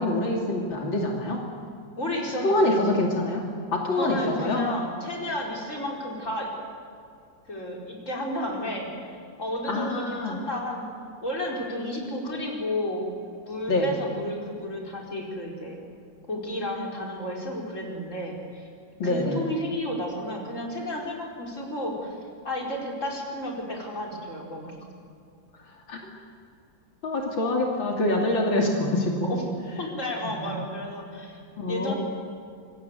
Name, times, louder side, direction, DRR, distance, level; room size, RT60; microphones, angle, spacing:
voice 1, 0.0-1.4 2.4-3.4 3.7-4.6 9.7-10.4 13.7-13.8 19.0-19.4 25.9-26.0 27.0-29.4 30.4-30.5 31.6-31.9, left 2 dB, 80° left, 0 dB, 3.4 m, -25 dB
voice 2, 2.0-2.9 4.0-6.5 7.5-10.9 11.2-13.0 13.5-15.8 16.3-18.7 19.0-22.2 22.4-24.8 29.2-29.4 29.8-31.4 31.7-31.9, left 1 dB, 40° left, -1 dB, 5.0 m, -32 dB
26.5 x 23.0 x 8.1 m, 2.4 s
omnidirectional pair, 2.1 m